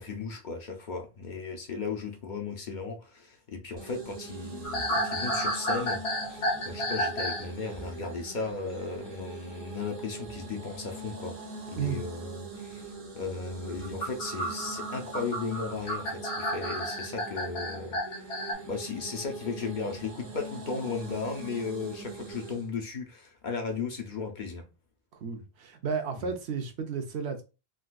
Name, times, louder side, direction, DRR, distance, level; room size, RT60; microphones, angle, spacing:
voice 1, 0.0-11.4 11.7-12.8 13.1-24.6 26.2-26.3, left 4 dB, 55° left, 0.7 m, -36 dB
sound 1, 3.8-22.7, right 3 dB, 55° right, 1.0 m, -43 dB
sound 2, 4.6-7.5 7.7-8.0 10.2-10.5 11.8-11.9 13.8-18.5, equal, 75° left, 1.1 m, -32 dB
voice 2, 25.2-27.4, right 6 dB, 85° right, 0.9 m, -33 dB
3.8 x 2.4 x 2.3 m
omnidirectional pair, 1.1 m